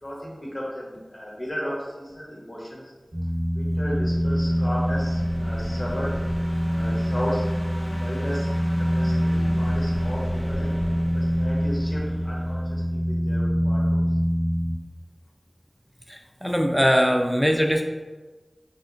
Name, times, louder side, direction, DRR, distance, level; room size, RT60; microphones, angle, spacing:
voice 1, 0.0-2.9 3.5-6.1 6.6-7.4 7.9-8.5 8.8-10.7 11.1-13.9, equal, 50° left, -5 dB, 1.0 m, -34 dB
sound 1, 3.1-14.7, equal, 40° right, 0.7 m, -25 dB
sound 2, 3.6-8.1 9.0-12.7, equal, 20° right, 0.9 m, -39 dB
Quitting Time, 3.9-12.6, equal, 85° left, 1.4 m, -42 dB
voice 2, 16.1-17.8, equal, 5° left, 2 dB, 0.4 m, -21 dB
3.3 x 2.8 x 2.5 m, 1.2 s
wide cardioid pair, 50°, 0 cm